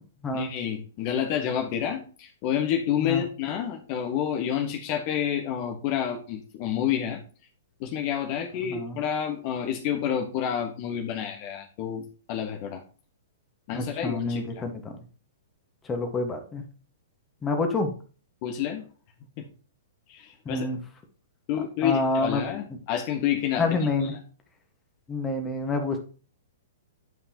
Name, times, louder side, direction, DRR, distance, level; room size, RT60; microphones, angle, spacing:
voice 1, 0.3-7.2 7.8-12.0 12.3-12.8 13.7-14.7 18.4-18.9 19.4-19.5 20.1-20.7 21.5-23.7 24.0-24.2, left 9 dB, 40° left, 4 dB, 1.3 m, -29 dB
voice 2, 13.7-14.7 15.9-16.6 17.4-17.9 20.4-20.8 21.8-22.4 23.6-24.1 25.1-26.0, left 3 dB, 15° left, 5 dB, 1.5 m, -27 dB
9.5 x 5.4 x 2.9 m, 0.38 s
figure-of-eight pair, 115°, 0 cm